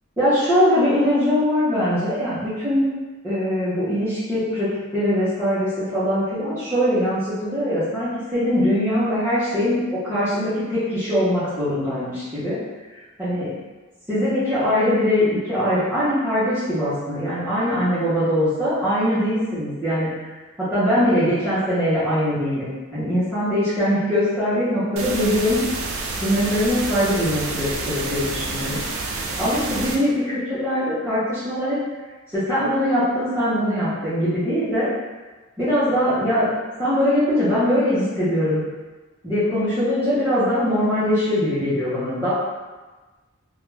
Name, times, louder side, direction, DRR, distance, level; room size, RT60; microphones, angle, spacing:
voice 1, 0.2-2.9 3.2-12.6 13.2-13.5 14.1-20.1 20.6-25.6 26.2-31.8 32.3-34.9 35.6-36.5 36.8-38.6 39.2-42.3, equal, 10° right, -16 dB, 0.8 m, -22 dB
sound 1, 25.0-30.0, right 3 dB, 75° right, 0.4 m, -29 dB
2.3 x 2.2 x 3.1 m, 1.2 s
head